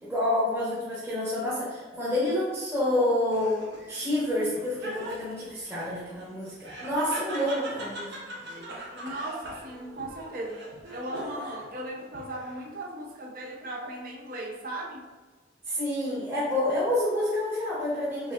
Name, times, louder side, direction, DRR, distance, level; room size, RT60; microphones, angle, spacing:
voice 1, 0.0-3.6 3.9-8.2 15.7-18.3, left 1 dB, 15° right, -9 dB, 1.1 m, -28 dB
Laughter, 3.3-11.7 12.1-12.8, right 1 dB, 70° right, 0.9 m, -41 dB
voice 2, 8.9-10.6 10.9-15.0, right 1 dB, 50° right, -1 dB, 0.6 m, -37 dB
5.3 x 3.2 x 2.4 m, 1.3 s
head